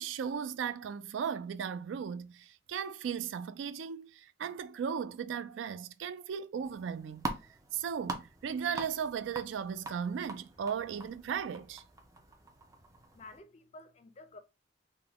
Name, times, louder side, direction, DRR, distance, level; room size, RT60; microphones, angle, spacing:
voice 1, 0.0-7.3 7.7-11.8, right 7 dB, 85° right, 0.3 m, -36 dB
sound 1, 6.6-13.4, right 3 dB, 20° right, 0.5 m, -44 dB
voice 2, 13.1-14.4, left 2 dB, 35° left, 0.4 m, -51 dB
3.5 x 2.1 x 3.4 m
head